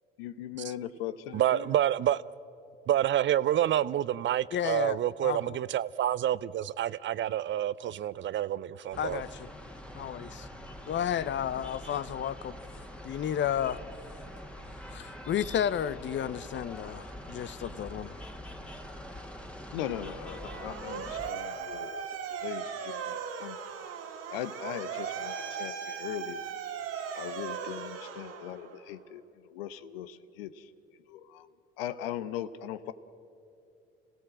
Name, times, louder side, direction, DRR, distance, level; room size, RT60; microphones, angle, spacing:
voice 1, 0.2-1.8 19.7-23.9 24.3-26.4 27.1-30.7 31.1-31.5 31.8-32.9, left 11 dB, 75° left, 0.9 m, -39 dB
voice 2, 1.3-2.2 2.9-9.2, right 11 dB, 40° right, 0.5 m, -28 dB
voice 3, 4.5-5.6 9.0-9.5 9.9-10.5 10.9-12.5 13.0-13.8 14.9-18.1, left 9 dB, 40° left, 0.8 m, -32 dB
sound 1, 8.9-21.3, equal, 5° left, 1.9 m, -44 dB
Motor vehicle (road) / Siren, 20.3-28.9, right 7 dB, 55° right, 2.1 m, -38 dB
26.5 x 16.5 x 7.6 m
figure-of-eight pair, 55°, 30 cm